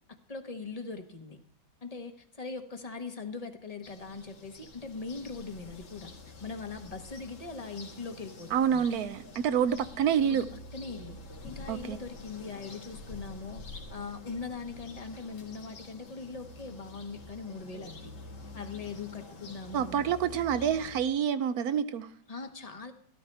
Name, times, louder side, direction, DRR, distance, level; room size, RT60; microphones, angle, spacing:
voice 1, 0.3-1.4 1.8-8.8 10.2-10.5 10.7-11.2 11.4-13.6 13.9-18.1 18.5-20.1 22.3-22.9, left 4 dB, 25° left, 6 dB, 0.9 m, -41 dB
sound 1, 3.8-21.0, left 2 dB, 60° left, 2.4 m, -47 dB
voice 2, 8.5-10.4 11.7-12.0 19.7-22.1, right 8 dB, 65° right, 13 dB, 0.9 m, -27 dB
13.5 x 13.5 x 3.3 m, 0.67 s
omnidirectional pair, 2.0 m